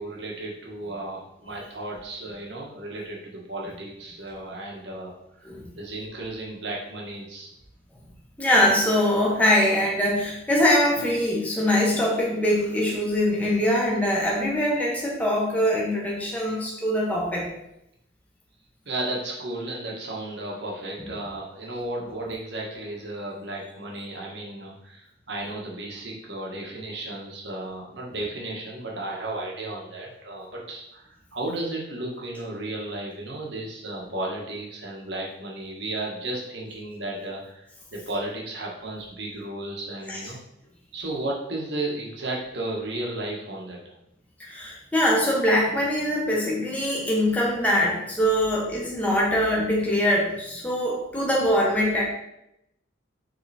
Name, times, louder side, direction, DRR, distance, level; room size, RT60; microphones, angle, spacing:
voice 1, 0.0-5.5 5.8-7.5 18.8-40.4 40.9-43.8, right 2 dB, 60° right, -2 dB, 1.6 m, -34 dB
voice 2, 8.4-17.5 40.1-40.2 44.4-52.0, left 1 dB, 10° left, -4 dB, 1.3 m, -23 dB
6.7 x 3.9 x 4.3 m, 0.83 s
head